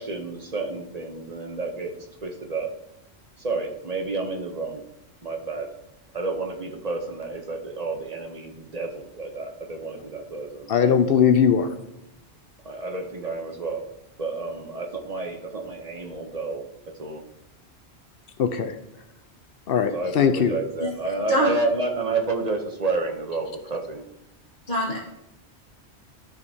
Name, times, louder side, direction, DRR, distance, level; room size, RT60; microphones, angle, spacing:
voice 1, 0.0-1.9 2.2-2.7 3.4-4.8 5.2-5.7 6.1-11.0 12.6-13.8 14.2-16.6 17.0-17.2 19.9-24.1, right 3 dB, 40° right, 3 dB, 0.8 m, -30 dB
voice 2, 10.7-11.7 18.4-18.8 19.7-20.5, left 7 dB, 65° left, 9 dB, 0.7 m, -20 dB
voice 3, 24.7-25.0, left 1 dB, 45° left, -6 dB, 1.4 m, -24 dB
12.5 x 5.1 x 2.7 m, 0.87 s
omnidirectional pair, 1.1 m